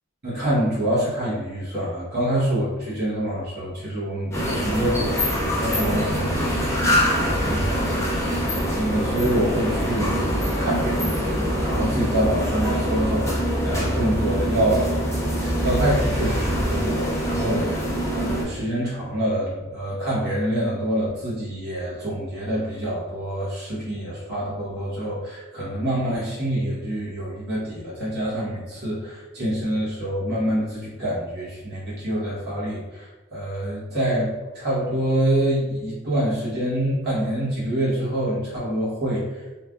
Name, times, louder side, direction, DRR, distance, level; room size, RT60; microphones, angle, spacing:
voice 1, 0.2-5.3 5.6-17.9 18.1-39.4, right 1 dB, 55° right, -8 dB, 0.9 m, -26 dB
sound 1, 4.3-18.4, equal, 15° left, 0.9 m, -24 dB
sound 2, 4.5-16.9, equal, 55° left, 0.7 m, -32 dB
3.2 x 2.3 x 2.2 m, 1.2 s
head